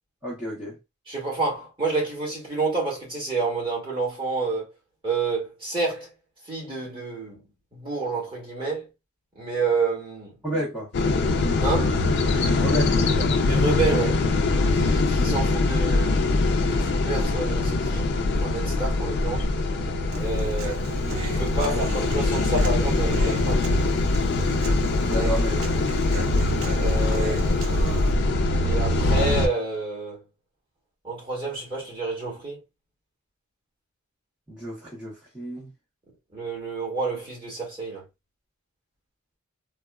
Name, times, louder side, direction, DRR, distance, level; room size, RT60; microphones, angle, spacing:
voice 1, 0.2-0.8 10.4-10.9 12.5-13.3 25.0-25.8 34.5-35.7, equal, 5° right, 0.9 m, -31 dB
voice 2, 1.1-4.7 5.0-6.1 6.5-7.4 7.7-8.8 9.3-10.4 11.6-12.0 13.5-14.2 14.7-16.2 16.5-18.1 18.4-19.5 20.2-20.9 21.1-23.6 25.1-25.3 26.8-27.7 28.6-30.2 31.0-32.6 36.3-38.0, right 3 dB, 25° right, 1.5 m, -29 dB
sound 1, 10.9-29.5, left 2 dB, 50° left, 0.4 m, -23 dB
Human voice, 20.1-28.1, right 3 dB, 65° right, 0.5 m, -36 dB
3.4 x 2.1 x 2.3 m
head